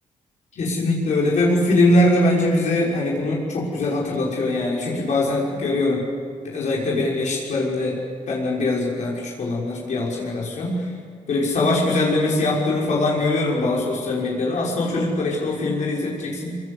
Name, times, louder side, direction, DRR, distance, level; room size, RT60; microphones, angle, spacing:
voice 1, 0.6-6.0 6.4-8.0 8.3-10.9 11.3-16.6, left 2 dB, 65° left, -3 dB, 6.1 m, -22 dB
25.5 x 25.0 x 8.4 m, 2.1 s
wide cardioid pair, 145°, 13 cm